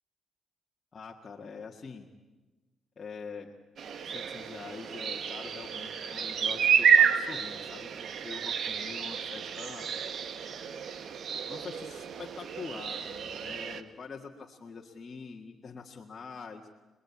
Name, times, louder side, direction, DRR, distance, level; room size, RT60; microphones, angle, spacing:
voice 1, 0.9-2.1 3.0-3.6 4.0-7.9 8.2-10.0 11.5-16.6, left 5 dB, 35° left, -1 dB, 1.9 m, -44 dB
sound 1, 3.8-13.8, right 7 dB, 60° right, 1.5 m, -30 dB
27.0 x 21.0 x 8.6 m, 1.2 s
cardioid pair, 90°, 0 cm